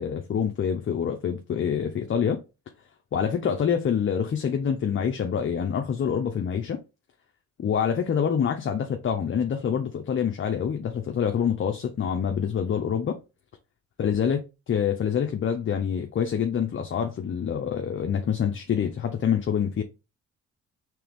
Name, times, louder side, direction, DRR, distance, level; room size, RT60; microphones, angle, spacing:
voice 1, 0.0-2.4 3.1-6.8 7.6-13.2 14.0-19.8, left 7 dB, 40° left, 0.7 m, -26 dB
4.5 x 3.3 x 3.5 m
cardioid pair, 90°, 30 cm